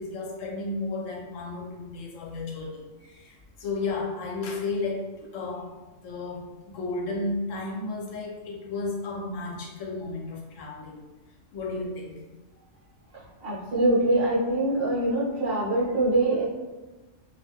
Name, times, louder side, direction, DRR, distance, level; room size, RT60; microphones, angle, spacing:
voice 1, 0.0-5.7 6.0-11.1 11.5-12.2, left 3 dB, 75° left, 0 dB, 0.9 m, -33 dB
voice 2, 13.4-16.4, right 2 dB, 50° right, -8 dB, 1.0 m, -24 dB
2.4 x 2.1 x 3.4 m, 1.2 s
omnidirectional pair, 1.3 m